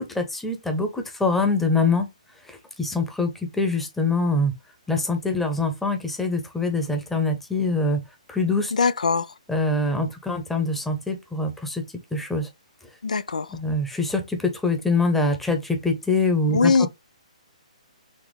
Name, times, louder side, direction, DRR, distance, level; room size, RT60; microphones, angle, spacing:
voice 1, 0.0-2.1 2.5-4.5 4.9-8.0 8.3-8.7 9.5-11.8 12.1-12.5 13.5-16.7, left 3 dB, 5° left, 0.9 m, -24 dB
voice 2, 8.7-9.3 13.0-13.6 16.5-16.9, left 4 dB, 75° left, 0.4 m, -21 dB
4.2 x 2.9 x 3.3 m
figure-of-eight pair, 135°, 4 cm